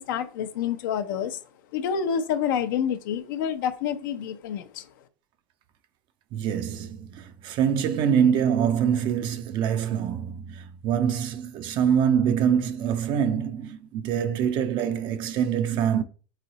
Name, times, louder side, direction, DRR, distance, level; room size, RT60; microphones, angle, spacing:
voice 1, 0.0-1.4 1.7-4.9, left 8 dB, 75° left, 0.7 m, -28 dB
voice 2, 6.3-16.0, right 8 dB, 45° right, 0.6 m, -25 dB
3.8 x 3.3 x 4.0 m
hypercardioid pair, 110°, 11 cm